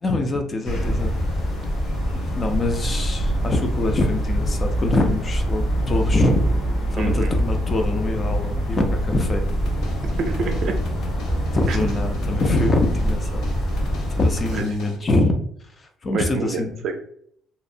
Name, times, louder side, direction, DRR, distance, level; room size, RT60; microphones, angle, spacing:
voice 1, 0.0-1.1 2.1-6.4 6.9-9.4 11.5-13.4 14.2-15.4 16.0-16.7, left 2 dB, 25° left, 4 dB, 0.3 m, -23 dB
sound 1, 0.6-14.6, equal, 55° left, 0.9 m, -25 dB
sound 2, 0.7-10.8, left 1 dB, 85° left, 1.3 m, -34 dB
voice 2, 7.0-7.3 10.2-10.8 11.7-11.9 14.5-14.6 16.1-17.0, right 4 dB, 50° right, 5 dB, 0.4 m, -27 dB
sound 3, 9.5-15.0, left 2 dB, 70° left, 0.6 m, -41 dB
2.7 x 2.0 x 2.5 m, 0.65 s
cardioid pair, 155°, 0 cm